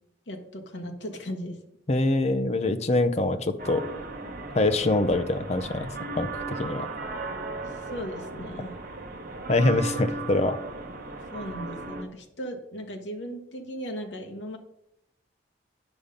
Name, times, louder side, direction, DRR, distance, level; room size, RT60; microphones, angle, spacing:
voice 1, 0.3-1.6 7.7-8.7 11.3-14.6, equal, 70° left, 3 dB, 1.3 m, -37 dB
voice 2, 1.9-3.8 4.5-5.9 6.2-6.9 9.5-10.6, left 2 dB, 35° left, 9 dB, 0.6 m, -24 dB
sound 1, 3.6-12.0, right 3 dB, 50° right, 1.0 m, -36 dB
9.8 x 5.6 x 5.2 m, 0.79 s
head